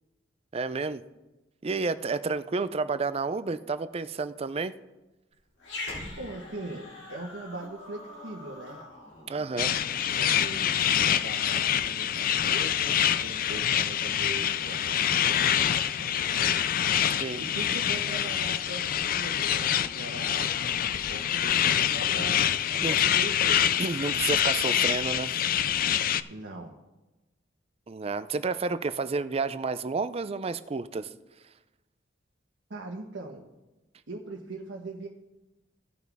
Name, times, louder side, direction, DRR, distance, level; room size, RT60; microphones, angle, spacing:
voice 1, 0.5-1.0 1.6-4.7 9.3-9.7 17.2-17.4 22.8-23.0 23.8-25.3 27.9-31.1, right 4 dB, 35° right, 14 dB, 0.4 m, -30 dB
Growling, 5.6-10.2, left 2 dB, 75° left, 3.5 m, -43 dB
voice 2, 6.1-8.8 10.2-10.8 11.1-16.6 17.4-22.4 22.7-23.6 26.3-26.7 32.7-33.4 34.1-35.1, right 2 dB, 85° right, -1 dB, 1.2 m, -41 dB
sound 1, 9.6-26.2, left 10 dB, 50° left, 0.4 m, -26 dB
17.0 x 6.1 x 3.5 m, 1.1 s
head